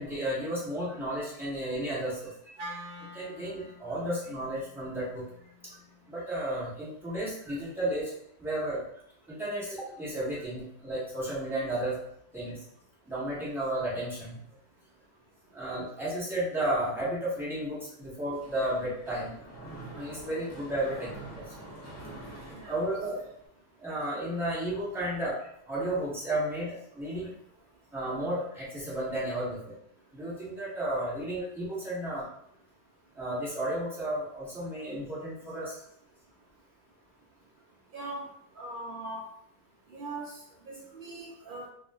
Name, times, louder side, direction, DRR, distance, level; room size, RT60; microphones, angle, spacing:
voice 1, 0.0-2.5 3.1-5.2 5.6-5.8 6.1-8.1 8.4-8.8 9.3-12.0 12.3-12.6 13.1-14.4 15.5-19.4 19.9-21.5 22.7-23.3 23.8-27.3 27.9-29.6 30.1-32.3 33.1-35.8, right 1 dB, ahead, -8 dB, 1.2 m, -33 dB
Wind instrument woodwind instrument, 2.6-6.8, equal, 70° right, 1.0 m, -47 dB
Mechanisms, 18.3-23.5, right 2 dB, 15° left, 0.5 m, -46 dB
voice 2, 37.9-38.3 38.6-39.2 39.9-40.4 40.7-41.7, right 2 dB, 85° right, -3 dB, 0.4 m, -40 dB
2.5 x 2.4 x 3.6 m, 0.69 s
omnidirectional pair, 1.6 m